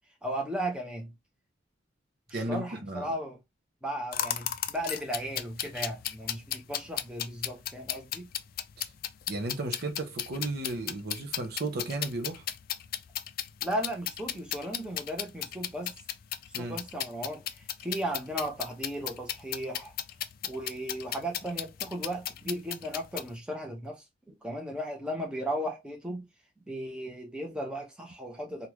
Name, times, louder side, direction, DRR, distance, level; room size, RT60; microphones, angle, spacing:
voice 1, 0.2-1.1 2.3-3.4 3.8-8.3 13.6-15.9 16.6-19.9 20.4-26.2 26.7-28.7, right 1 dB, 5° right, 0.8 m, -36 dB
voice 2, 2.3-3.1 8.8-8.9 9.3-12.4 16.5-16.8, right 2 dB, 55° right, 0.7 m, -34 dB
sound 1, 4.1-23.3, left 11 dB, 50° left, 0.3 m, -35 dB
3.5 x 2.4 x 3.0 m
head